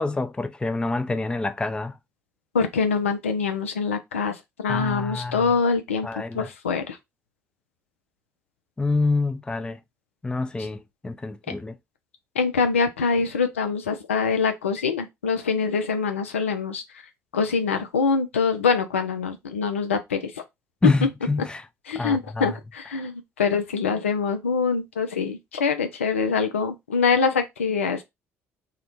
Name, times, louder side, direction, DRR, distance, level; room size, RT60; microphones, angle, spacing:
voice 1, 0.0-1.9 4.7-5.5 6.0-6.5 8.8-9.8 10.2-11.8 20.8-21.6 21.9-22.5, left 3 dB, 15° left, 0.4 m, -26 dB
voice 2, 2.5-7.0 12.4-16.8 17.3-20.3 21.9-28.1, left 5 dB, 85° left, 0.3 m, -24 dB
2.4 x 2.1 x 2.9 m
figure-of-eight pair, 55°, 7 cm